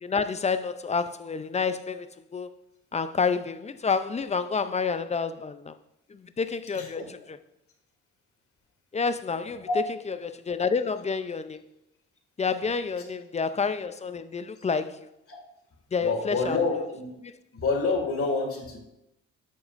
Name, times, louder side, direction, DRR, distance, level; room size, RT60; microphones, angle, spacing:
voice 1, 0.0-2.1 2.3-2.5 2.9-5.7 6.1-7.0 8.9-9.7 10.1-11.6 12.4-15.1 15.9-16.6, left 5 dB, 25° left, 0.4 m, -29 dB
voice 2, 6.7-7.0 9.4-9.8 15.3-15.4 16.0-17.1 17.5-18.8, left 3 dB, 50° left, 2.1 m, -28 dB
8.3 x 7.4 x 2.5 m
cardioid pair, 90°, 30 cm